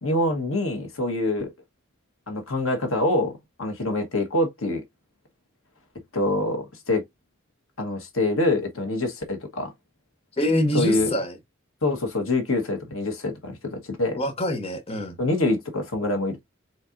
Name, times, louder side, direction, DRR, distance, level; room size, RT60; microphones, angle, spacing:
voice 1, 0.0-1.5 2.3-3.3 3.6-4.8 6.1-7.0 7.8-9.7 10.7-11.1 11.8-14.2 15.2-16.4, left 2 dB, 85° left, 1.3 m, -25 dB
voice 2, 10.4-11.4 14.2-15.2, left 1 dB, 30° left, 0.8 m, -25 dB
4.3 x 4.0 x 2.5 m
head